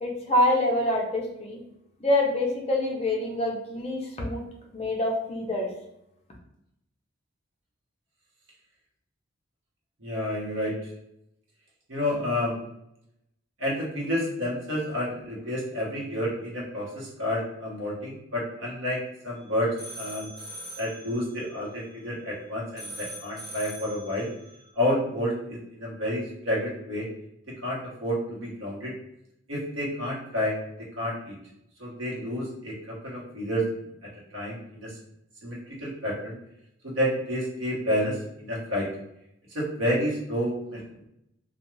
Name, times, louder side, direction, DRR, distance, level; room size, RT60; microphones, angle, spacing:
voice 1, 0.0-1.6 2.0-4.4 4.7-5.7, left 1 dB, 30° left, -2 dB, 0.5 m, -26 dB
voice 2, 10.0-10.7 11.9-12.5 13.6-19.0 19.2-20.3 20.8-24.3 24.8-27.0 27.6-28.9 29.5-30.6 31.0-31.3 31.8-33.6 34.3-34.9 35.4-36.4 36.8-38.9 39.5-40.8, equal, 75° right, -5 dB, 1.0 m, -29 dB
sound 1, 19.4-22.4 22.8-24.7, right 1 dB, 20° right, 0.7 m, -43 dB
2.3 x 2.2 x 3.0 m, 0.80 s
head